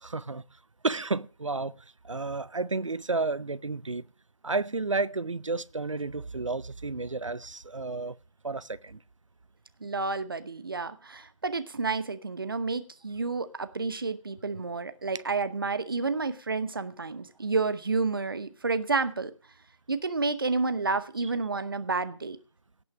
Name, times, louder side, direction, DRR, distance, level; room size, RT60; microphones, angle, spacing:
voice 1, 0.0-0.4 0.8-4.0 4.4-8.2 8.4-9.0, right 3 dB, 65° right, 0.7 m, -31 dB
voice 2, 9.8-19.3 19.9-22.4, right 4 dB, 40° right, 1.0 m, -30 dB
17.0 x 6.1 x 6.2 m
figure-of-eight pair, 160°, 17 cm